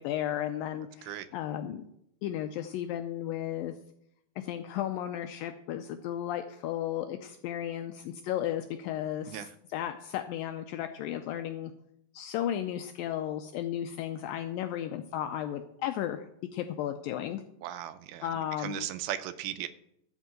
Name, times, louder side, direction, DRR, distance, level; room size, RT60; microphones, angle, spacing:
voice 1, 0.0-1.8 2.2-3.7 4.4-11.7 12.1-16.3 16.5-17.4 18.2-18.9, left 11 dB, 85° left, 7 dB, 2.0 m, -34 dB
voice 2, 17.6-18.3 18.6-19.7, right 12 dB, 85° right, 12 dB, 2.4 m, -37 dB
13.0 x 4.5 x 7.5 m, 0.77 s
omnidirectional pair, 4.5 m